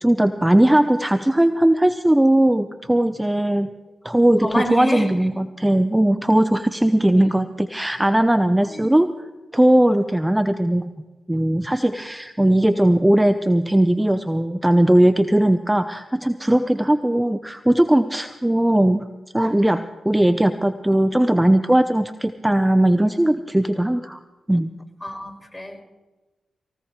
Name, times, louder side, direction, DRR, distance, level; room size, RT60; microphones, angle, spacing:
voice 1, 0.0-3.7 4.0-9.1 9.5-10.9 11.3-19.1 19.3-24.2 24.5-24.7, right 1 dB, 10° right, 10 dB, 0.8 m, -18 dB
voice 2, 4.4-5.1 7.1-7.2 8.6-9.0 25.0-25.8, left 1 dB, 15° left, 1 dB, 5.3 m, -28 dB
22.5 x 18.0 x 3.2 m, 1.2 s
supercardioid pair, 40°, 0 cm